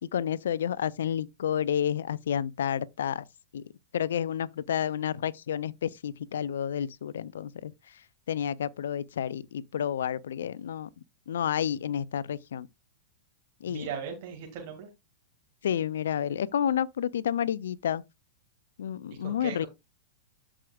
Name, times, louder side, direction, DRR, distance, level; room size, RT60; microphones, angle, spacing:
voice 1, 0.0-3.2 3.5-3.6 3.9-7.7 8.3-10.9 11.3-12.7 13.6-13.9 15.6-18.0 18.8-19.7, left 9 dB, 70° left, 0.5 m, -30 dB
voice 2, 13.7-14.9 19.2-19.7, right 7 dB, 50° right, 2.0 m, -38 dB
13.0 x 4.9 x 2.3 m
hypercardioid pair, 105°, 0 cm